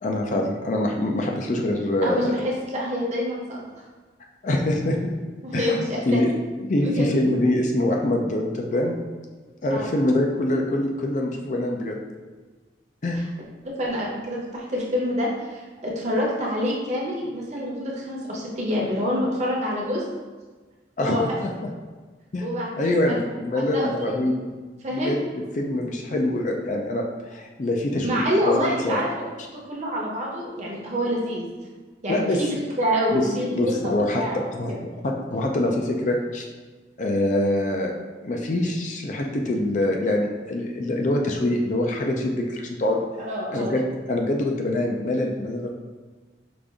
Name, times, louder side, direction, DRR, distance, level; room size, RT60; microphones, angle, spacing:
voice 1, 0.0-2.5 4.4-5.1 5.5-5.8 6.1-6.3 6.6-9.0 9.6-12.0 13.0-13.2 21.0-21.5 22.3-22.5 22.8-24.3 24.9-25.2 25.6-29.0 32.1-32.4 33.1-33.3 33.5-34.2 34.5-34.7 35.0-36.4 37.0-37.9 38.2-43.1 43.5-45.7, left 1 dB, 40° left, 1 dB, 0.4 m, -24 dB
voice 2, 2.0-3.8 5.4-6.2 6.8-7.1 9.7-9.8 13.6-20.0 21.0-21.2 22.4-23.2 23.5-24.3 24.8-25.1 28.0-29.3 29.7-31.5 32.0-32.5 32.8-33.7 34.1-34.4 34.7-34.8 43.3-43.8, equal, 40° right, -3 dB, 0.8 m, -27 dB
5.1 x 2.5 x 3.5 m, 1.3 s
head